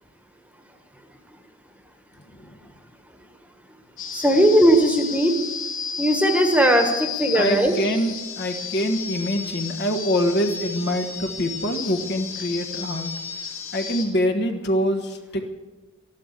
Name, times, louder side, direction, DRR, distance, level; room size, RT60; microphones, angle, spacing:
sound 1, 4.0-14.0, left 6 dB, 75° left, 3.1 m, -33 dB
voice 1, 4.1-5.3 6.0-7.7, equal, 5° right, 5 dB, 1.4 m, -18 dB
voice 2, 7.3-13.1 13.7-15.5, equal, 50° left, 5 dB, 1.4 m, -25 dB
13.0 x 11.5 x 8.1 m, 1.2 s
head